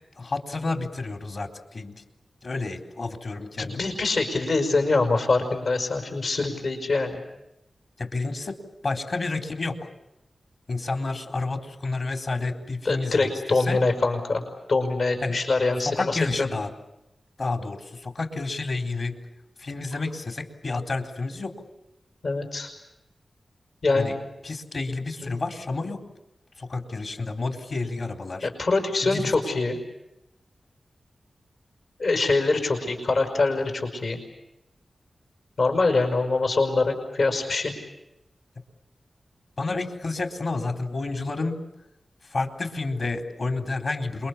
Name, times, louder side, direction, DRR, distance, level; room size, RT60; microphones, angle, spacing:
voice 1, 0.2-2.0 2.4-3.9 8.0-9.9 10.7-13.8 15.2-15.4 15.8-16.7 17.4-19.2 19.6-21.5 24.0-24.1 24.4-26.0 26.6-28.5 29.1-29.3 39.6-41.6 42.2-44.3, left 3 dB, 65° left, 5 dB, 4.0 m, -30 dB
voice 2, 3.6-7.1 12.8-14.4 14.7-16.5 22.2-22.7 23.8-24.1 25.2-25.3 28.4-29.8 32.0-34.2 35.6-37.7, left 3 dB, 80° left, 5 dB, 5.6 m, -24 dB
28.0 x 23.0 x 8.5 m, 0.88 s
cardioid pair, 60°, 0 cm